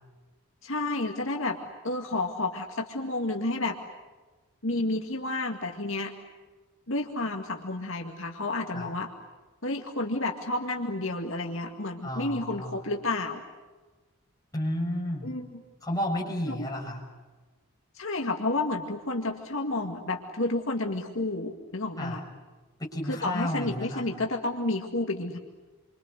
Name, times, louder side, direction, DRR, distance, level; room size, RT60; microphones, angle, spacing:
voice 1, 0.6-1.6 1.8-3.8 4.6-6.1 6.9-9.1 9.6-13.4 15.2-15.6 16.5-16.7 17.9-22.2 23.1-25.4, left 2 dB, 65° left, 2 dB, 2.1 m, -30 dB
voice 2, 12.0-12.8 14.5-15.3 15.8-17.0 22.0-22.2 22.8-24.1, left 1 dB, 15° left, -3 dB, 6.9 m, -32 dB
28.5 x 25.0 x 8.2 m, 1.3 s
head